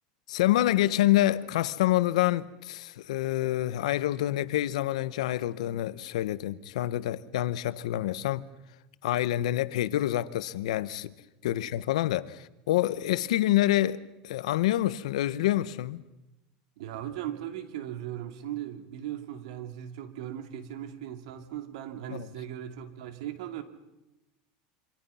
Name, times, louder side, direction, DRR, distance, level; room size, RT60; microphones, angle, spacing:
voice 1, 0.3-8.4 9.0-11.1 11.4-16.0 22.1-22.3, left 14 dB, 90° left, 1.1 m, -27 dB
voice 2, 16.8-23.6, right 11 dB, 80° right, 2.7 m, -38 dB
27.0 x 25.0 x 5.7 m
supercardioid pair, 135°, 3 cm